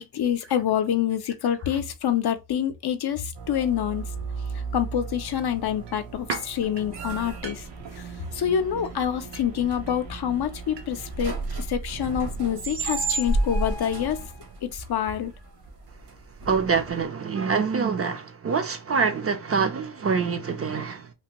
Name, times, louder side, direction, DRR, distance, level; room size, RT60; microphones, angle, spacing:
voice 1, 0.0-4.1 4.7-7.6 8.3-14.2 14.7-15.3, left 9 dB, 65° left, 0.5 m, -26 dB
sound 1, 3.4-17.0, right 3 dB, 65° right, 1.0 m, -33 dB
sound 2, 5.3-11.2 11.4-11.5, right 5 dB, 85° right, 0.8 m, -41 dB
voice 2, 16.4-21.1, right 5 dB, 35° right, 0.4 m, -25 dB
3.0 x 2.5 x 2.9 m
wide cardioid pair, 170°, 42 cm